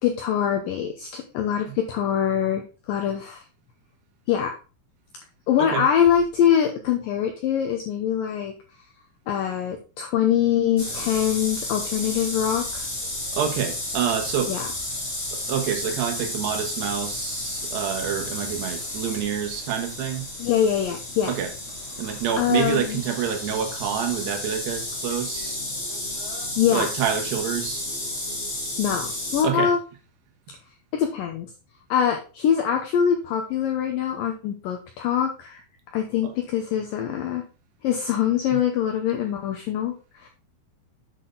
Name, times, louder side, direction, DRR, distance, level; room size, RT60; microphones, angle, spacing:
voice 1, 0.0-3.4 4.3-4.6 5.5-8.5 9.3-12.9 14.5-14.7 20.4-21.3 22.4-23.0 26.6-26.9 28.8-29.8 30.9-31.5 31.9-35.6 35.9-37.4 37.8-40.3, left 9 dB, 80° left, 4 dB, 2.0 m, -24 dB
sound 1, 10.8-29.4, left 1 dB, 25° left, 1.6 m, -32 dB
voice 2, 13.3-14.5 15.3-20.3 21.3-21.5 22.0-25.6 26.7-27.9 29.4-29.7 36.2-36.3 38.5-38.6, right 9 dB, 75° right, 4 dB, 3.3 m, -27 dB
8.1 x 6.0 x 3.9 m, 0.34 s
omnidirectional pair, 5.0 m